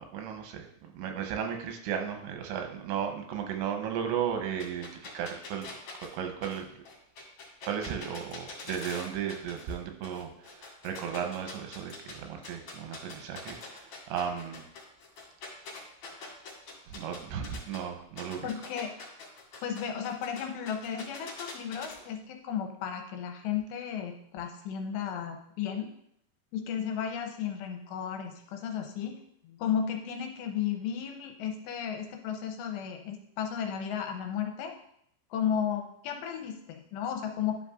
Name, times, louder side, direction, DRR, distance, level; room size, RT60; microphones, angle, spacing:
voice 1, 0.0-4.9 5.1-5.7 6.1-6.7 7.6-14.6 16.9-18.5, right 8 dB, 90° right, 4 dB, 3.1 m, -35 dB
sound 1, 4.6-9.8 10.0-12.1 12.4-17.8 18.2-21.9, left 4 dB, 50° left, 2.5 m, -44 dB
voice 2, 18.4-18.9 19.6-25.9 26.5-29.2 29.4-34.7 35.3-37.6, left 8 dB, 85° left, 4 dB, 2.8 m, -34 dB
11.0 x 6.1 x 2.5 m, 0.71 s
omnidirectional pair, 5.2 m